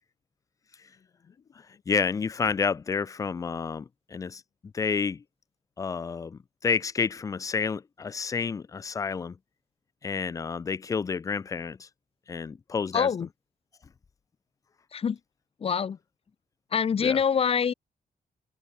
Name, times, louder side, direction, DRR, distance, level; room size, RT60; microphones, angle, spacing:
voice 1, 1.9-4.4 4.7-5.2 5.8-9.4 10.0-11.9 12.3-13.1 17.0-17.2, left 5 dB, 20° left, 0.3 m, -30 dB
voice 2, 12.9-13.3 14.9-15.2 15.6-16.0 16.7-17.7, left 7 dB, 40° left, 1.8 m, -25 dB
wide cardioid pair, 180°, 15 cm